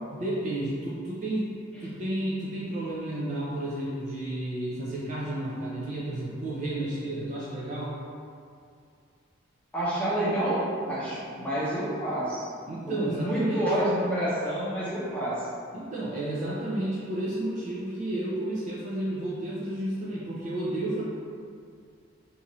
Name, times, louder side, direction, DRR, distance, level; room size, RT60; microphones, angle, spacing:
voice 1, 0.1-7.9 12.7-13.8 15.7-21.0, right 1 dB, 35° right, -6 dB, 0.3 m, -32 dB
voice 2, 9.7-12.5 13.0-15.5, right 1 dB, 5° left, -10 dB, 0.6 m, -28 dB
2.7 x 2.4 x 2.9 m, 2.3 s
head